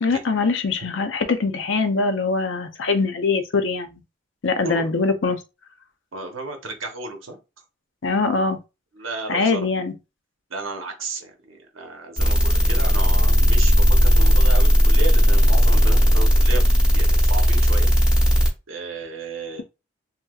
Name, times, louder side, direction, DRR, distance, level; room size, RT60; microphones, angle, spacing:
voice 1, 0.0-4.0 4.4-5.4 8.0-8.6 9.3-9.9, left 4 dB, 65° left, 0.5 m, -22 dB
voice 2, 6.1-7.4 8.9-9.7 10.5-16.6 16.9-17.9 18.7-19.6, right 3 dB, 85° right, 0.9 m, -33 dB
sound 1, 12.2-18.5, equal, 5° right, 0.9 m, -16 dB
3.2 x 2.7 x 2.3 m
head